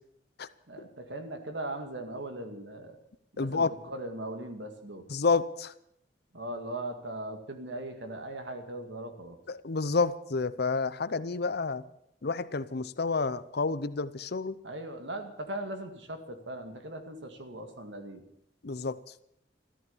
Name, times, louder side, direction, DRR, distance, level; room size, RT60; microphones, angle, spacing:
voice 1, 0.7-3.0 3.3-5.0 6.3-9.4 14.6-18.2, right 1 dB, 70° right, 6 dB, 2.2 m, -39 dB
voice 2, 3.4-3.8 5.1-5.7 9.5-11.8 12.2-14.6 18.6-19.0, left 4 dB, 60° left, 15 dB, 0.7 m, -29 dB
14.0 x 13.5 x 7.2 m, 0.73 s
head